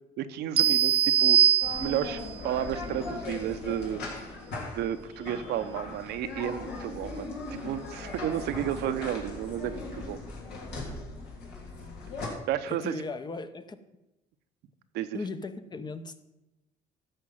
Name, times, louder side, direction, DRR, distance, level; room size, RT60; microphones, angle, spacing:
voice 1, 0.2-1.4 1.8-4.0 4.7-10.2 12.2-12.9 14.9-15.2, right 11 dB, 80° right, 9 dB, 0.8 m, -32 dB
sound 1, 0.6-2.3, right 9 dB, 35° right, 0.4 m, -22 dB
sound 2, 1.6-12.3, left 3 dB, 80° left, 3.6 m, -39 dB
voice 2, 12.7-13.8 15.1-16.2, left 3 dB, 25° left, 10 dB, 0.8 m, -37 dB
13.5 x 5.2 x 7.5 m, 0.97 s
cardioid pair, 110°, 17 cm